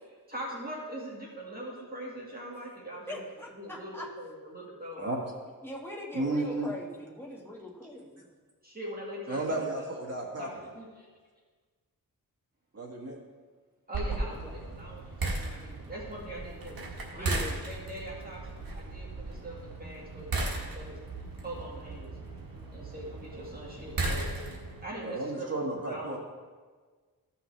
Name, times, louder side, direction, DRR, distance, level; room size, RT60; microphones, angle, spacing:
voice 1, 0.3-3.2 3.6-5.2 8.6-9.9 10.4-11.1 13.9-16.8 17.1-17.3 17.7-21.0 21.4-22.2 22.7-24.3 24.8-26.2, right 1 dB, 25° right, -5 dB, 2.0 m, -42 dB
voice 2, 3.1-4.1 5.6-8.2 14.1-14.6 17.2-17.6, left 1 dB, 5° left, -3 dB, 1.7 m, -41 dB
voice 3, 6.1-6.7 9.3-10.5 12.7-13.2 25.0-26.2, right 2 dB, 45° right, -1 dB, 1.7 m, -33 dB
sound 1, 13.9-24.8, right 2 dB, 70° right, 1.4 m, -36 dB
15.0 x 5.7 x 3.3 m, 1.5 s
wide cardioid pair, 100°, 36 cm